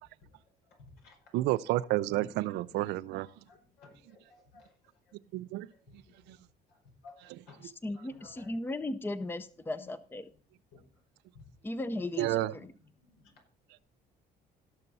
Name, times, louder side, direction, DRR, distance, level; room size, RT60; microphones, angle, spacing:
voice 1, 0.7-1.2 1.7-1.8 2.1-2.2 2.7-2.8 3.2-4.7 5.1-5.2 5.7-6.4 6.7-7.6 7.9-8.7 9.8-9.9 10.7-10.9 11.3-11.4 12.2-13.3, left 3 dB, 85° left, 5.2 m, -56 dB
voice 2, 1.3-3.3 5.3-5.7 12.2-12.5, right 16 dB, 85° right, 0.6 m, -30 dB
voice 3, 7.8-10.3 11.6-12.3, left 2 dB, 10° left, 0.7 m, -36 dB
16.5 x 6.7 x 4.2 m
cardioid pair, 110°, 17 cm